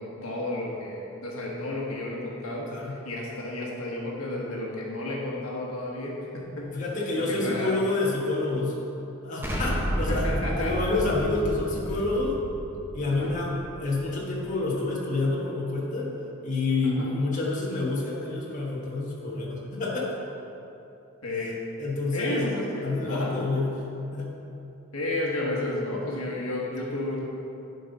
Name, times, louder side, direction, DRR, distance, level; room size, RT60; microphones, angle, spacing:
voice 1, 0.0-6.8 7.2-7.7 10.1-10.7 11.9-12.0 13.1-13.3 16.8-16.9 21.2-21.6 22.1-23.3 24.9-27.2, left 2 dB, 80° left, -3 dB, 1.3 m, -32 dB
voice 2, 6.7-8.8 9.2-10.3 10.6-12.4 12.9-16.1 16.4-20.1 21.8-22.4 22.8-23.7 24.1-24.6, left 2 dB, 35° left, -5 dB, 1.4 m, -28 dB
Explosion, 9.4-14.3, equal, 10° right, 0.8 m, -31 dB
11.0 x 5.4 x 4.0 m, 2.9 s
head